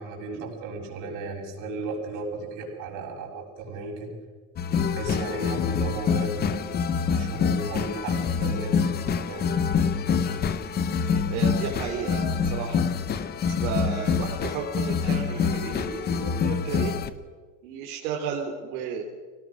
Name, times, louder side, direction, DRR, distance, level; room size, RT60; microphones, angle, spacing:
voice 1, 0.0-4.2 4.9-6.8 7.1-9.5, right 2 dB, 45° right, -1 dB, 6.7 m, -35 dB
sound 1, 4.6-17.1, left 6 dB, 20° left, 0.8 m, -26 dB
voice 2, 11.3-12.8 13.5-16.9 17.6-19.0, right 7 dB, 75° right, 0 dB, 3.3 m, -33 dB
24.5 x 18.0 x 6.3 m, 1.5 s
supercardioid pair, 155°, 43 cm